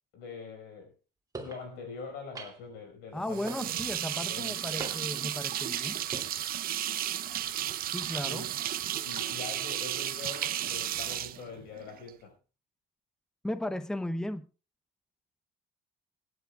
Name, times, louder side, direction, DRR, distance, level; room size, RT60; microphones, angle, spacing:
voice 1, 0.1-0.9 1.4-3.7 4.1-5.0 8.2-8.5 9.0-12.3, left 4 dB, 90° left, 5.4 m, -44 dB
sound 1, 1.3-1.6 2.4-2.8 3.5-4.0 4.8-5.3 6.0-6.3, right 3 dB, 20° right, 2.9 m, -42 dB
voice 2, 3.1-6.0 7.9-8.4 13.4-14.5, left 1 dB, 5° left, 0.8 m, -35 dB
sound 2, 3.3-12.1, right 12 dB, 60° right, 0.8 m, -33 dB
26.5 x 11.0 x 2.4 m
cardioid pair, 110°, 17 cm